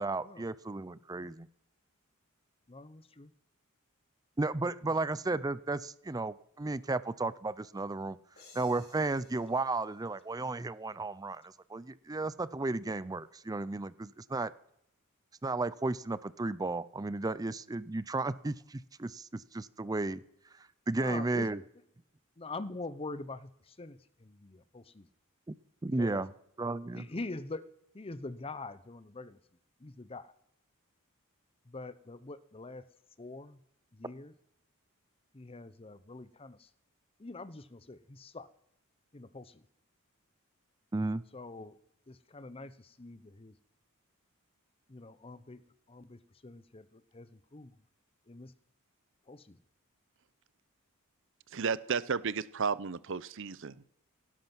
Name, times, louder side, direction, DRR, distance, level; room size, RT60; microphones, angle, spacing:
voice 1, 0.0-1.5 4.4-8.2 8.5-14.5 15.4-20.2 20.9-21.6 25.8-26.3 26.6-27.1 40.9-41.2, right 2 dB, 15° right, 17 dB, 0.4 m, -34 dB
voice 2, 2.7-3.3 4.8-4.9 21.0-21.7 22.4-25.1 26.0-26.2 26.9-27.7 27.9-29.4 29.8-30.3 31.7-32.8 33.2-33.6 33.9-34.3 35.3-36.7 37.2-38.5 39.1-39.6 41.3-41.8 42.1-43.5 44.9-45.6 45.9-47.7 48.3-48.5 49.3-49.6, left 3 dB, 25° left, 14 dB, 0.7 m, -44 dB
sound 1, 8.4-11.0, left 4 dB, 50° left, 5.3 m, -60 dB
voice 3, 51.5-53.8, right 5 dB, 60° right, 18 dB, 0.7 m, -33 dB
17.5 x 11.0 x 6.0 m, 0.78 s
head